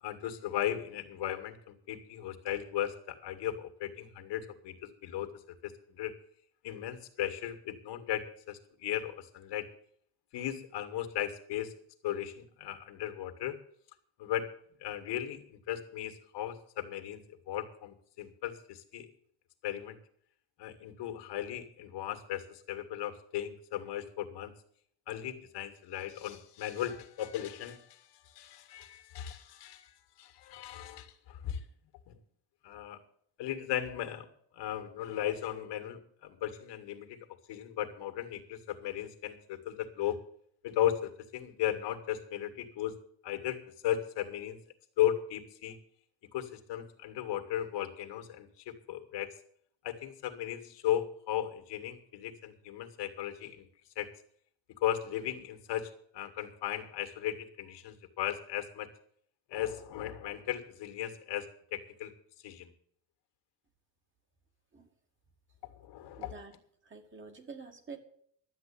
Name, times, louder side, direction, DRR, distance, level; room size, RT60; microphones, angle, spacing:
voice 1, 0.0-6.1 6.6-9.7 10.3-11.7 12.0-13.6 14.2-14.5 14.8-17.2 17.5-19.1 19.6-20.0 20.6-24.5 25.1-31.6 32.1-32.2 32.6-33.0 33.4-34.3 34.5-37.2 37.5-40.2 40.6-43.0 43.2-44.6 45.0-45.8 46.3-49.3 49.8-53.7 54.0-54.1 54.8-58.9 59.5-62.1 62.4-62.7 65.7-66.3, left 11 dB, 75° left, 7 dB, 2.1 m, -36 dB
voice 2, 66.2-66.5 66.8-68.0, right 4 dB, 25° right, 5 dB, 2.0 m, -47 dB
12.5 x 8.2 x 8.6 m, 0.64 s
cardioid pair, 130°, 43 cm